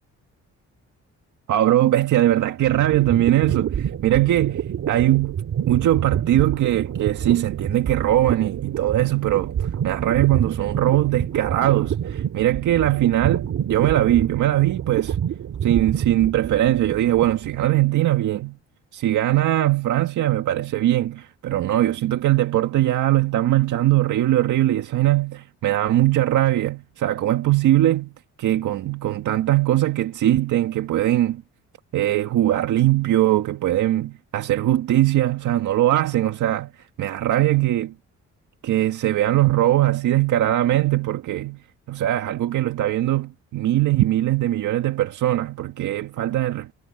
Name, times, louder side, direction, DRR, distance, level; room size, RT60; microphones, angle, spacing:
voice 1, 1.5-5.4 5.7-15.2 15.6-18.6 18.9-28.1 28.4-31.4 31.9-37.9 38.6-41.6 41.9-46.7, right 14 dB, 75° right, 1.8 m, -21 dB
sound 1, 2.5-17.7, right 9 dB, 60° right, 2.7 m, -28 dB
cardioid pair, 90°, 30 cm